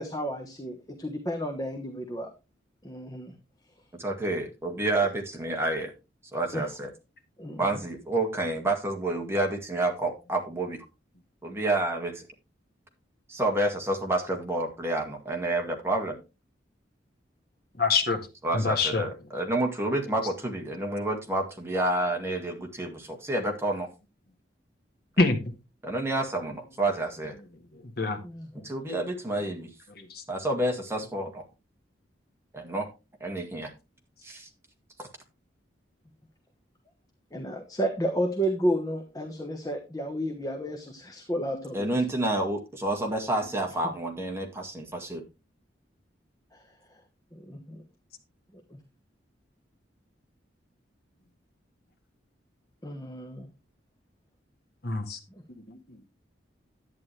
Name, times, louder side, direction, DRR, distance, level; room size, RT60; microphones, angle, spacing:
voice 1, 0.0-2.3 2.8-3.3 6.5-6.6 7.4-7.7 28.2-28.7 37.3-41.9 46.5-47.0 47.3-47.8 48.7-48.8 52.8-53.5 55.3-55.4, equal, 20° left, 4 dB, 1.1 m, -32 dB
voice 2, 4.0-5.9 6.3-6.9 7.6-10.8 11.4-12.2 13.3-16.2 18.4-23.9 25.8-27.3 28.6-29.7 30.3-31.4 32.5-32.9 33.2-33.7 34.2-34.5 35.0-35.1 41.7-45.2, right 2 dB, 15° right, 2 dB, 1.9 m, -29 dB
voice 3, 17.8-18.2 18.5-19.0 25.2-25.5 28.0-28.2 30.0-30.2 54.8-55.2 55.7-55.8, left 3 dB, 55° left, 6 dB, 1.7 m, -25 dB
11.0 x 9.4 x 3.3 m, 0.28 s
head